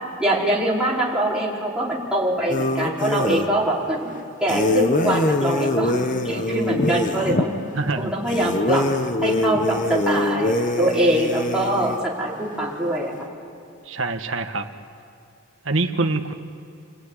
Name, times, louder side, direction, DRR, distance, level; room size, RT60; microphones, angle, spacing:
voice 1, 0.2-4.1 4.4-6.0 6.2-7.5 8.0-8.9 9.2-13.1, right 1 dB, 5° right, -5 dB, 4.8 m, -23 dB
sound 1, 2.5-3.5 4.5-7.5 8.3-12.0, left 2 dB, 40° left, 1.3 m, -23 dB
voice 2, 7.7-8.1 13.8-14.7 15.6-16.3, right 3 dB, 70° right, 6 dB, 1.5 m, -24 dB
28.5 x 18.0 x 9.9 m, 2.7 s
head